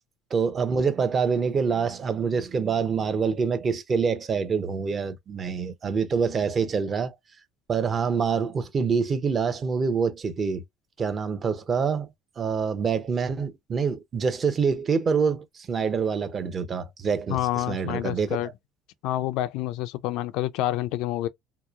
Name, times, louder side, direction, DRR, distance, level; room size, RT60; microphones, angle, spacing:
voice 1, 0.3-7.2 7.7-10.6 11.0-12.1 12.4-18.4, right 5 dB, 35° right, 0.6 m, -26 dB
voice 2, 17.3-18.5 19.0-21.3, left 14 dB, 75° left, 0.3 m, -28 dB
2.9 x 2.1 x 2.3 m
cardioid pair, 110°, 0 cm